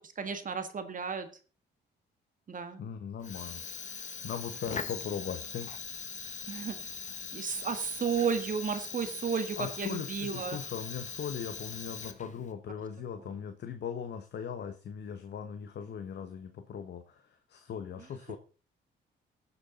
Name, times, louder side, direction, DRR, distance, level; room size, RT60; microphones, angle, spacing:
voice 1, 0.2-1.3 2.5-2.8 6.5-6.8 7.3-10.6, right 6 dB, 40° right, 9 dB, 1.7 m, -33 dB
voice 2, 2.8-5.7 9.6-18.4, left 7 dB, 60° left, 8 dB, 1.2 m, -39 dB
Fire, 3.2-12.5, left 5 dB, 40° left, 1.3 m, -41 dB
15.5 x 7.2 x 3.9 m, 0.36 s
cardioid pair, 90°, 20 cm